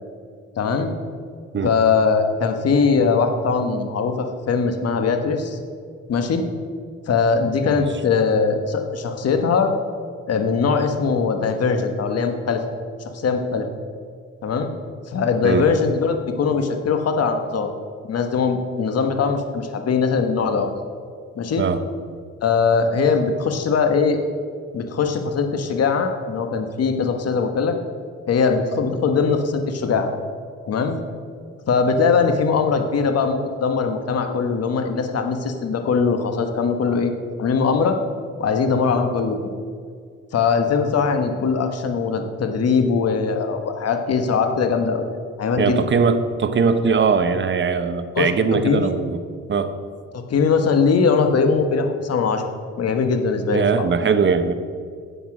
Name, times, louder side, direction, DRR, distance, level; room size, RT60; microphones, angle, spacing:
voice 1, 0.6-0.9 1.6-5.6 6.1-6.4 7.1-9.7 10.3-12.6 13.1-13.7 14.4-14.7 15.1-17.7 18.1-20.7 21.3-21.6 22.4-24.2 24.7-27.8 28.3-30.1 30.7-31.0 31.7-37.1 37.4-38.0 38.4-39.4 40.3-45.1 45.4-45.8 48.1-48.3 48.6-48.9 50.1-52.5 52.8-53.8, left 5 dB, 55° left, 6 dB, 1.3 m, -21 dB
voice 2, 45.6-49.2 49.5-49.7 53.5-54.5, right 5 dB, 40° right, 10 dB, 0.9 m, -20 dB
11.0 x 8.0 x 6.2 m, 2.1 s
cardioid pair, 90°, 30 cm